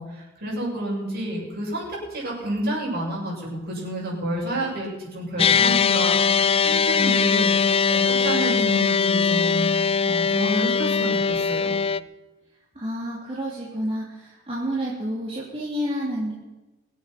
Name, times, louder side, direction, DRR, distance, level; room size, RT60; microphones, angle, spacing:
voice 1, 0.0-1.9 2.1-9.7 10.1-11.8, right 1 dB, 55° right, -3 dB, 7.1 m, -29 dB
sound 1, 5.4-12.0, left 5 dB, 30° left, 0.4 m, -21 dB
voice 2, 12.7-14.0 14.5-16.3, equal, 30° right, -6 dB, 3.1 m, -29 dB
23.5 x 8.8 x 5.9 m, 1.1 s
head